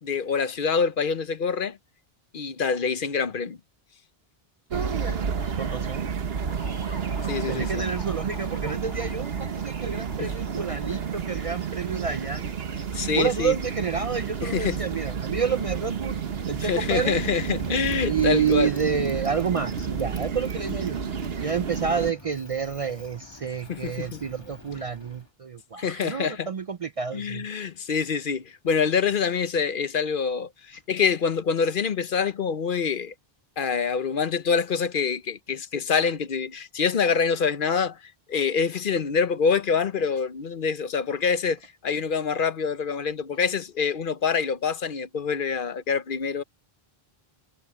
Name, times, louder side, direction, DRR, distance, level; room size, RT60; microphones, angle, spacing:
voice 1, 0.0-1.8 2.3-3.6 7.2-7.8 10.2-10.3 12.9-13.6 14.4-14.8 16.6-18.7 23.7-24.2 25.8-26.5 27.1-33.1 33.6-46.4, left 6 dB, 60° left, 0.9 m, -26 dB
voice 2, 4.7-5.3 5.6-6.1 7.5-12.5 13.2-17.2 18.1-21.0 21.4-27.5, right 6 dB, 45° right, 0.5 m, -29 dB
sound 1, 4.7-22.1, right 6 dB, 75° right, 1.3 m, -31 dB
Motorcycle, 6.3-25.3, left 1 dB, 25° left, 1.9 m, -47 dB
omnidirectional pair, 1.0 m